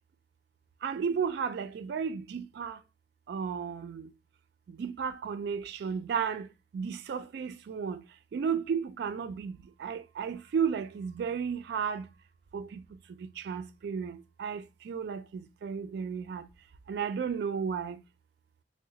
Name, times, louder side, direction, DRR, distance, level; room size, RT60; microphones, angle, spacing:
voice 1, 0.8-2.8 3.3-4.1 4.7-6.5 6.7-8.0 8.3-12.0 12.5-12.8 13.4-16.4 16.9-18.0, right 6 dB, 65° right, 0.3 m, -33 dB
3.7 x 2.1 x 2.6 m
head